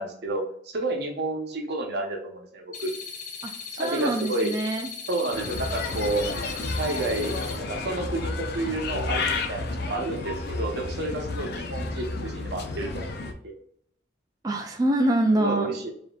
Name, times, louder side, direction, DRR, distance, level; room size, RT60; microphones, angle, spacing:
voice 1, 0.0-2.9 3.8-4.5 5.1-6.3 6.8-7.3 7.7-13.1 13.4-13.5 15.3-15.9, right 2 dB, 65° right, 3 dB, 0.9 m, -30 dB
sound 1, 2.7-7.6, left 6 dB, 45° left, 0.9 m, -38 dB
voice 2, 3.4-4.9 14.4-15.8, right 1 dB, 20° right, 2 dB, 0.3 m, -25 dB
Bird, 5.3-13.3, left 3 dB, 60° left, 0.5 m, -31 dB
5.1 x 2.8 x 2.4 m, 0.66 s
head